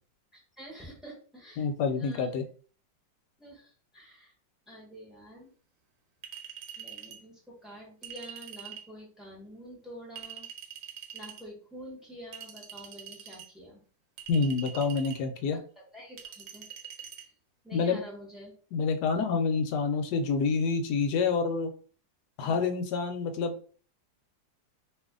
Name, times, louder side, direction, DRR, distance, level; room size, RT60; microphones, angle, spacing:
voice 1, 0.3-2.4 3.4-4.3 4.7-5.5 6.8-10.5 11.1-13.8 15.5-15.6 15.9-16.7 17.1-17.2 17.6-18.5 22.4-22.6, equal, ahead, -4 dB, 0.8 m, -48 dB
voice 2, 1.6-2.4 14.3-15.6 17.7-18.0 18.7-21.7 22.4-23.5, left 5 dB, 70° left, 6 dB, 1.1 m, -27 dB
Chink clink, 6.2-7.2 8.0-8.9 10.2-11.4 12.3-13.5 14.2-15.2 16.2-17.2, right 9 dB, 80° right, 1.4 m, -44 dB
2.7 x 2.6 x 3.6 m, 0.42 s
omnidirectional pair, 2.0 m